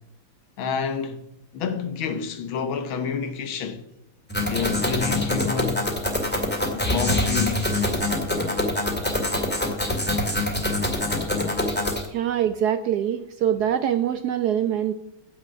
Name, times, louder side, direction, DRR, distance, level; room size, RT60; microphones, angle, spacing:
voice 1, 0.6-1.2 1.5-3.8 4.5-5.8 6.7-7.7, left 6 dB, 80° left, 1.9 m, -28 dB
sound 1, 4.3-12.1, left 1 dB, 5° left, 1.8 m, -25 dB
voice 2, 12.1-14.9, right 10 dB, 75° right, 0.9 m, -24 dB
9.7 x 7.6 x 7.0 m
omnidirectional pair, 2.2 m